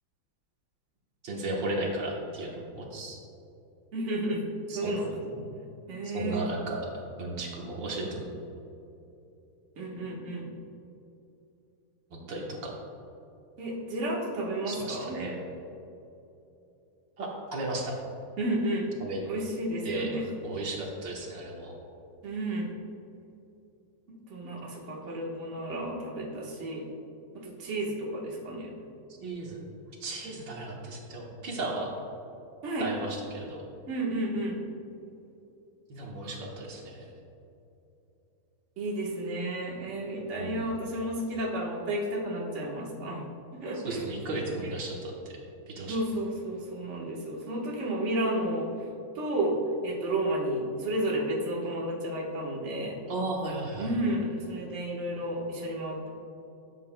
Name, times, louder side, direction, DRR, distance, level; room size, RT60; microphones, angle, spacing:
voice 1, 1.2-3.2 4.7-4.9 5.2-5.4 6.0-6.8 7.2-8.2 12.1-12.7 14.7-15.4 17.2-17.9 19.0-19.2 19.8-20.1 20.4-21.7 29.2-29.6 30.0-31.9 32.8-33.6 35.9-37.1 40.3-40.7 43.8-45.3 45.8-46.0 53.1-53.9, right 2 dB, 75° right, -2 dB, 1.8 m, -35 dB
voice 2, 3.9-4.4 4.7-5.2 5.9-6.5 9.8-10.6 13.6-15.2 18.4-18.9 19.3-20.3 22.2-22.7 24.3-26.8 27.4-28.7 32.6-32.9 33.9-34.6 36.2-36.3 38.8-43.2 43.5-44.0 45.9-48.7 49.1-49.6 49.8-53.0 53.8-56.1, right 1 dB, 45° right, -4 dB, 1.5 m, -32 dB
13.5 x 7.5 x 2.2 m, 2.8 s
omnidirectional pair, 2.0 m